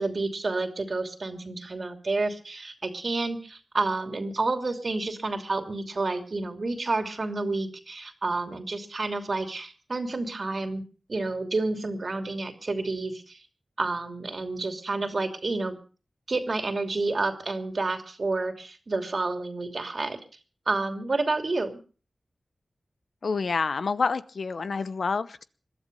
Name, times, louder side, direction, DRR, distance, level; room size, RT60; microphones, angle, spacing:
voice 1, 0.0-10.8 11.1-13.4 13.8-15.7 16.3-20.2 20.7-21.7, right 3 dB, 55° right, 6 dB, 2.9 m, -29 dB
voice 2, 23.2-25.4, left 4 dB, 75° left, 14 dB, 0.8 m, -28 dB
21.5 x 12.5 x 5.4 m, 0.39 s
cardioid pair, 55°, 0 cm